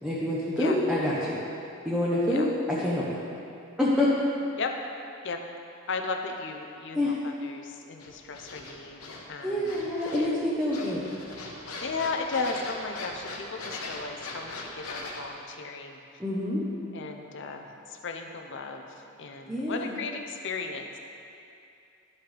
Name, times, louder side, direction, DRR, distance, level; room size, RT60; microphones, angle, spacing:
voice 1, 0.0-1.4 1.8-3.2 3.8-4.1 6.9-7.1 9.4-11.0 16.2-16.6 19.5-20.0, left 1 dB, 5° right, -9 dB, 0.9 m, -27 dB
voice 2, 5.9-9.8 10.2-10.3 11.8-16.0 16.9-18.8 19.2-21.0, left 4 dB, 55° left, 4 dB, 0.6 m, -35 dB
sound 1, 8.0-9.2 9.6-10.4 10.7-15.2, left 2 dB, 80° left, 1.1 m, -40 dB
11.5 x 5.8 x 3.4 m, 2.6 s
head